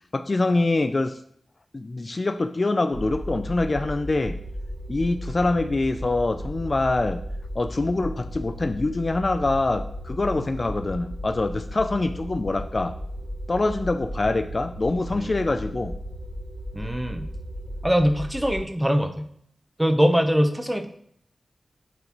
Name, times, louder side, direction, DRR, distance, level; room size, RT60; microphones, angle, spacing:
voice 1, 0.1-1.2 1.7-4.4 4.9-7.2 7.6-12.9 13.5-15.9, left 2 dB, 45° left, 9 dB, 0.4 m, -24 dB
sound 1, 2.9-18.6, equal, 90° right, 1.3 m, -35 dB
voice 2, 16.7-17.3 17.8-19.3 19.8-20.9, equal, 10° right, 7 dB, 0.8 m, -22 dB
9.1 x 3.9 x 3.0 m, 0.67 s
cardioid pair, 60°, 0 cm